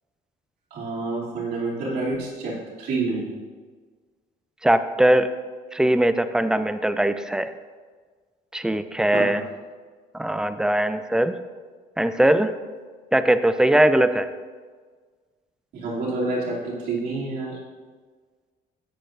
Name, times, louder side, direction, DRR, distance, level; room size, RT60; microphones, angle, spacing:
voice 1, 0.7-3.4 9.1-9.3 15.7-17.6, right 3 dB, 75° right, -5 dB, 2.9 m, -28 dB
voice 2, 4.6-5.3 5.7-7.5 8.5-9.4 10.1-11.4 12.0-12.5 13.1-14.3, right 1 dB, 5° right, 11 dB, 0.4 m, -20 dB
13.0 x 8.1 x 2.6 m, 1.5 s
cardioid pair, 110°, 17 cm